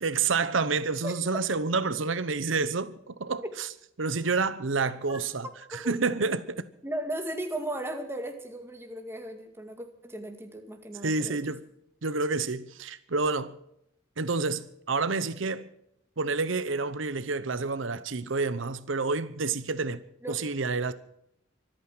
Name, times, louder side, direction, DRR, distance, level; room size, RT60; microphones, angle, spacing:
voice 1, 0.0-3.7 4.0-6.6 11.0-11.6 12.0-13.6 14.2-15.7 16.2-20.0 20.3-20.9, right 4 dB, 80° right, 0.9 m, -29 dB
voice 2, 6.8-11.4 20.2-20.4, right 1 dB, 10° right, 2.1 m, -36 dB
24.5 x 9.2 x 6.0 m
head